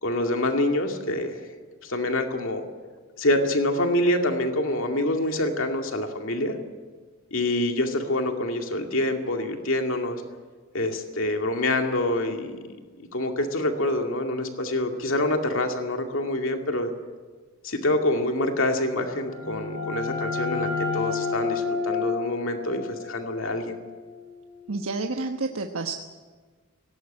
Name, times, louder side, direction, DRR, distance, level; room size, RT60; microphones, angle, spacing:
voice 1, 0.0-1.4 1.8-2.6 3.2-6.6 7.3-10.2 10.7-12.6 13.1-16.9 17.6-23.8, left 1 dB, 70° left, 4 dB, 2.3 m, -26 dB
sound 1, 19.1-24.6, left 4 dB, 85° left, 7.0 m, -31 dB
voice 2, 24.7-25.9, right 3 dB, 85° right, 4 dB, 1.2 m, -29 dB
18.0 x 18.0 x 9.9 m, 1.5 s
head